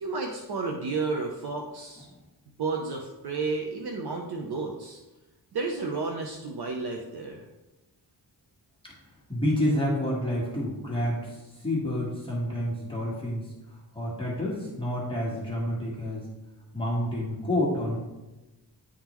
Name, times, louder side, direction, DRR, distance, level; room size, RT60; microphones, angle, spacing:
voice 1, 0.0-2.1 2.6-5.0 5.5-7.4, right 3 dB, 70° right, 2 dB, 0.7 m, -32 dB
voice 2, 9.3-13.5 13.9-16.3 16.7-18.0, left 1 dB, 15° left, -6 dB, 1.4 m, -29 dB
9.9 x 3.7 x 3.0 m, 1.1 s
wide cardioid pair, 165°, 41 cm